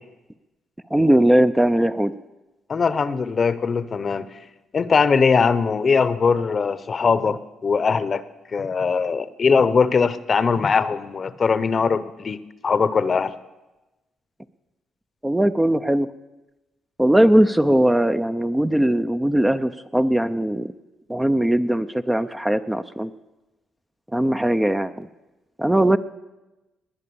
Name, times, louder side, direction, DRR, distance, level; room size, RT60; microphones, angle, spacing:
voice 1, 0.9-2.2 15.2-16.1 17.0-20.7 21.1-23.1 24.1-25.1 25.6-26.0, right 1 dB, 10° right, 10 dB, 0.6 m, -19 dB
voice 2, 2.7-4.3 4.7-8.2 8.5-12.4 12.6-13.3, left 5 dB, 40° left, 15 dB, 0.9 m, -20 dB
19.5 x 9.8 x 7.0 m, 1.0 s
cardioid pair, 90°, 0 cm